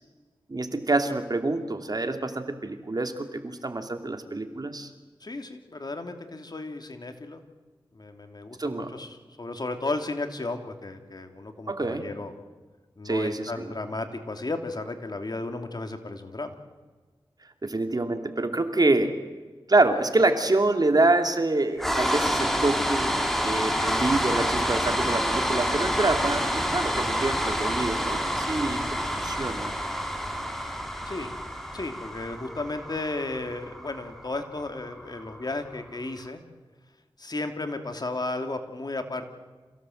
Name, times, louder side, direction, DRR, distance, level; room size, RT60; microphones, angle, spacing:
voice 1, 0.5-4.9 8.6-9.0 11.7-12.1 13.0-13.7 17.6-19.1 19.7-23.2 23.4-28.8 29.2-29.7, right 2 dB, 45° right, 7 dB, 2.6 m, -26 dB
voice 2, 5.2-7.4 7.9-12.3 13.0-16.6 31.0-31.3 31.7-36.4 37.2-39.2, left 2 dB, 50° left, 6 dB, 2.7 m, -34 dB
sound 1, 21.8-35.9, equal, 5° left, 3.5 m, -28 dB
27.5 x 17.0 x 7.9 m, 1.3 s
cardioid pair, 50°, 9 cm